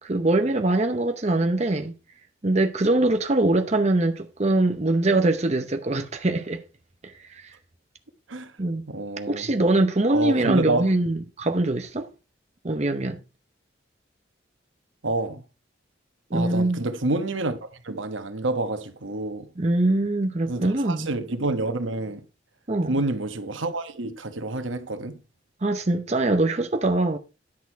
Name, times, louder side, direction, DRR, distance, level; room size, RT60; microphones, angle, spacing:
voice 1, 0.0-1.9 2.4-6.6 7.0-7.5 8.6-8.8 9.3-12.1 12.6-13.2 16.3-16.8 19.6-21.1 22.7-23.0 25.6-27.2, right 2 dB, 35° right, 0.7 m, -23 dB
voice 2, 8.9-9.5 10.1-10.9 15.0-15.4 16.3-17.6 17.8-19.5 20.5-22.2 22.9-25.2, right 2 dB, 85° right, 1.2 m, -28 dB
10.5 x 6.4 x 4.6 m
head